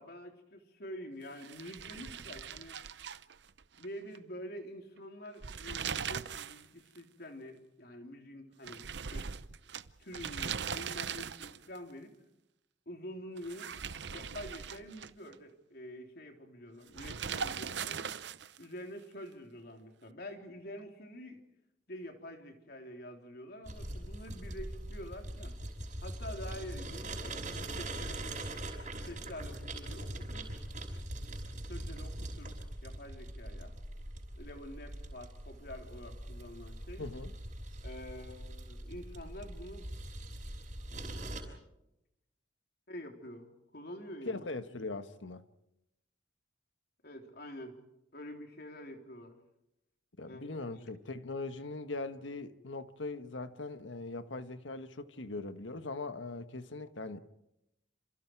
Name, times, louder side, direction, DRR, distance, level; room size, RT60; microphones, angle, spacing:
voice 1, 0.0-2.8 3.8-9.3 10.0-12.1 12.9-13.7 14.1-18.2 18.6-21.4 21.9-25.6 26.0-28.3 29.1-30.5 31.7-32.6 32.8-33.7 34.4-37.0 37.8-39.9 42.9-44.5 47.0-47.8 48.1-49.3 50.3-50.9, equal, 55° left, 3.6 m, -47 dB
sound 1, 1.4-3.9 4.2-4.3 5.3-6.7 7.0-7.1 8.7-11.8 13.4-15.4 16.9-18.6, right 7 dB, 65° right, 0.8 m, -40 dB
sound 2, 23.7-41.4, right 1 dB, 40° right, 5.7 m, -42 dB
voice 2, 37.0-37.3 44.2-45.5 50.2-57.2, left 3 dB, 85° left, 1.4 m, -40 dB
28.0 x 27.5 x 4.7 m
head